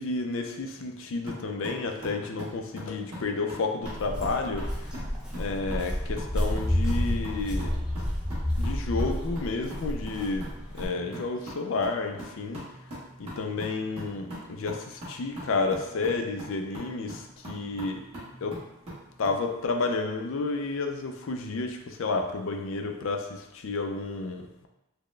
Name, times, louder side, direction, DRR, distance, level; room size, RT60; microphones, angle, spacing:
voice 1, 0.0-5.0 5.3-7.7 8.6-10.5 10.7-12.6 13.2-18.0 18.4-18.6 19.2-24.7, left 3 dB, 60° left, 4 dB, 0.4 m, -31 dB
sound 1, 1.3-19.4, equal, 25° right, 1.3 m, -43 dB
Walk footsteps, 3.8-10.8, equal, 5° right, 0.4 m, -30 dB
4.1 x 2.1 x 3.2 m, 0.94 s
head